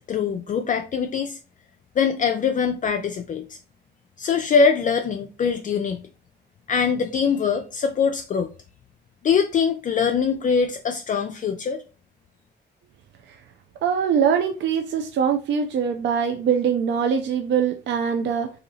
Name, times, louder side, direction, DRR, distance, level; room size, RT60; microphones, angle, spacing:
voice 1, 0.0-1.4 2.0-3.6 4.2-6.0 6.7-8.5 9.2-11.8, left 6 dB, 40° left, 0.4 m, -23 dB
voice 2, 13.8-18.5, right 7 dB, 65° right, 0.4 m, -23 dB
2.8 x 2.8 x 3.9 m
cardioid pair, 90°, 20 cm